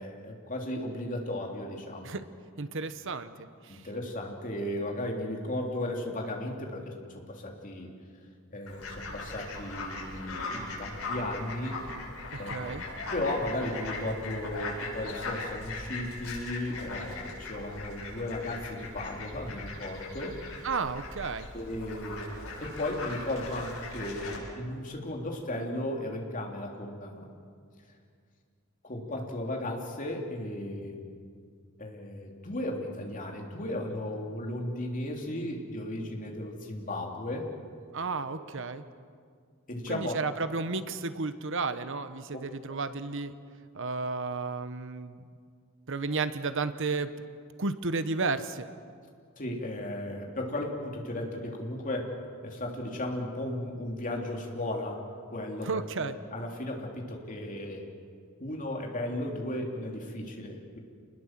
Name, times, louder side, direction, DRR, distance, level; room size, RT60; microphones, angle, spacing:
voice 1, 0.0-2.2 3.7-7.9 8.5-11.8 12.4-12.8 13.1-20.4 21.5-22.3 22.6-27.3 28.8-31.1 31.8-37.5 38.3-38.4 39.7-40.2 42.3-42.4 42.7-42.8 49.4-52.1 52.4-55.0 55.3-57.8 58.4-60.8, left 1 dB, 40° left, 1 dB, 3.4 m, -35 dB
voice 2, 2.6-3.3 3.6-3.9 12.5-12.8 20.6-21.5 37.9-38.8 39.9-43.3 43.7-45.2 45.9-47.1 47.6-48.7 55.6-56.2, right 4 dB, 60° right, 11 dB, 1.1 m, -32 dB
Fowl, 8.7-24.4, left 2 dB, 85° left, 7.3 m, -39 dB
28.0 x 20.5 x 7.6 m, 2.1 s
head